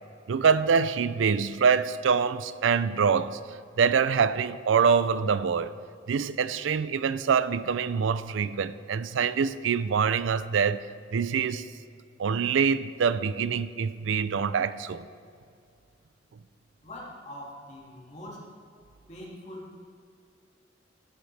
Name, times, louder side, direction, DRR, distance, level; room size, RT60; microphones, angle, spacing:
voice 1, 0.3-3.4 3.8-5.7 6.1-10.8 11.1-11.7 12.2-15.1, right 6 dB, 80° right, 0.4 m, -25 dB
voice 2, 16.8-18.5 19.1-19.9, left 1 dB, 40° left, 2.4 m, -43 dB
16.0 x 7.7 x 3.3 m
head